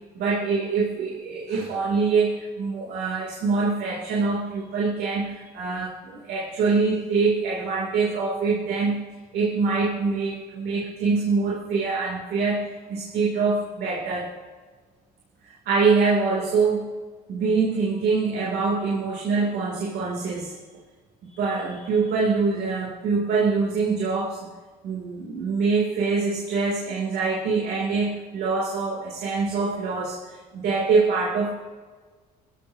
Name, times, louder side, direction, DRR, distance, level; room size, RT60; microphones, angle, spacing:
voice 1, 0.1-9.0 9.3-14.3 15.4-16.9 17.3-20.6 21.3-24.5 24.8-31.5, right 4 dB, 75° right, -3 dB, 2.9 m, -24 dB
22.5 x 15.0 x 2.8 m, 1.5 s
cardioid pair, 110°, 17 cm